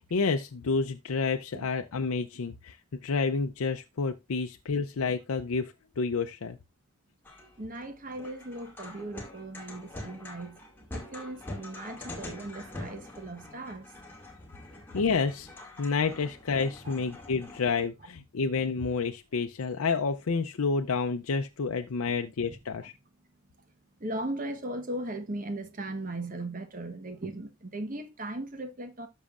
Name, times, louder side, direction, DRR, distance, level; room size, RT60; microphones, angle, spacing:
voice 1, 0.1-2.8 3.0-6.6 14.9-15.5 15.8-22.9, left 4 dB, 85° left, 0.6 m, -29 dB
sound 1, 7.2-17.8, left 1 dB, 10° left, 2.0 m, -45 dB
voice 2, 7.6-10.6 10.9-13.9 16.8-16.9 22.0-22.1 22.8-22.9 23.6-29.1, right 1 dB, 40° right, 1.1 m, -38 dB
12.5 x 6.3 x 2.5 m
head